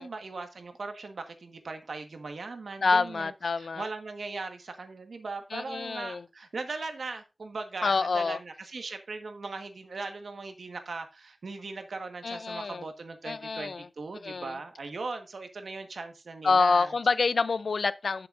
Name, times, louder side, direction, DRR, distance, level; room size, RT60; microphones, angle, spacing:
voice 1, 0.0-16.9, right 3 dB, 85° right, 1.4 m, -39 dB
voice 2, 2.8-3.9 5.5-6.2 7.8-8.4 12.2-12.9 13.2-13.9 14.2-14.6 16.4-18.3, left 4 dB, 85° left, 0.5 m, -27 dB
10.5 x 6.8 x 2.5 m
wide cardioid pair, 80°, 0 cm